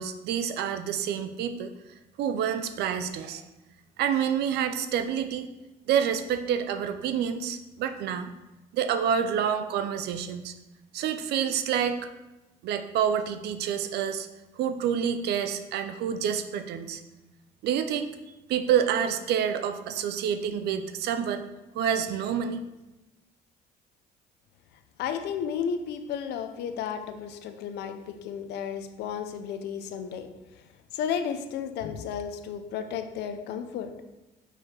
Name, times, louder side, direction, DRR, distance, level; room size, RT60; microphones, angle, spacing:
voice 1, 0.0-1.7 2.2-3.4 4.0-5.5 5.9-8.3 8.7-10.5 10.9-12.0 12.6-14.3 14.6-17.0 17.6-18.1 18.5-21.4 21.7-22.7, right 8 dB, 75° right, 10 dB, 0.7 m, -28 dB
voice 2, 25.0-30.3 30.9-33.9, left 7 dB, 80° left, 8 dB, 0.7 m, -33 dB
6.2 x 4.7 x 4.8 m, 1.0 s
cardioid pair, 110°, 17 cm